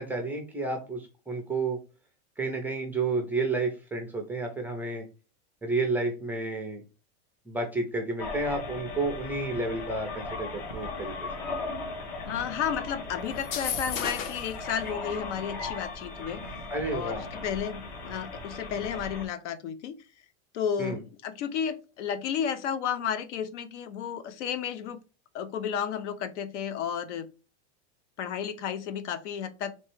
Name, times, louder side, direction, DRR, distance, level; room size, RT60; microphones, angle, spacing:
voice 1, 0.0-1.8 2.4-5.0 5.6-6.8 7.5-11.1 16.7-17.2 20.8-21.0, right 3 dB, 5° right, 0.3 m, -31 dB
sound 1, 8.2-19.3, left 3 dB, 65° left, 1.4 m, -37 dB
voice 2, 12.3-16.4 16.9-19.9 20.5-25.0 25.3-27.3 28.2-29.7, left 8 dB, 80° left, 0.8 m, -32 dB
sound 2, 13.4-14.6, left 7 dB, 40° left, 0.6 m, -33 dB
3.3 x 3.0 x 4.4 m
supercardioid pair, 155°, 35 cm